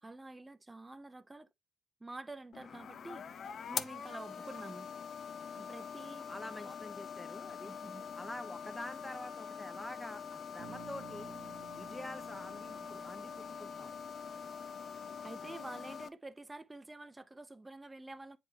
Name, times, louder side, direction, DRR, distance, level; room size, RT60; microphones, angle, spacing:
voice 1, 0.0-1.5 2.0-3.3 3.7-4.9 5.5-6.3 6.6-6.8 7.6-8.0 15.2-18.4, right 2 dB, 15° right, 0.7 m, -48 dB
sound 1, 2.5-16.1, left 7 dB, 55° left, 0.5 m, -44 dB
voice 2, 6.3-7.8 8.2-11.3 11.7-14.0 15.4-15.6, left 1 dB, 10° left, 0.9 m, -47 dB
Bass guitar, 10.6-14.7, right 8 dB, 70° right, 1.1 m, -55 dB
7.8 x 4.8 x 2.9 m
cardioid pair, 90°, 0 cm